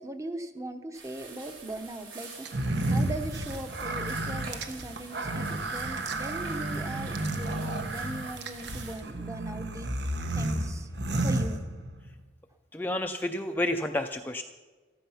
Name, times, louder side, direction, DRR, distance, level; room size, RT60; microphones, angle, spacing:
voice 1, 0.0-2.5 2.9-9.9 10.3-10.9 11.2-11.6, right 1 dB, 15° right, 7 dB, 0.9 m, -39 dB
sound 1, 0.9-9.0, right 4 dB, 90° right, 4.8 m, -47 dB
sound 2, 2.4-12.1, right 2 dB, 65° right, 1.3 m, -32 dB
voice 2, 12.7-14.4, left 1 dB, 10° left, 5 dB, 0.5 m, -30 dB
14.5 x 13.5 x 5.7 m, 1.3 s
head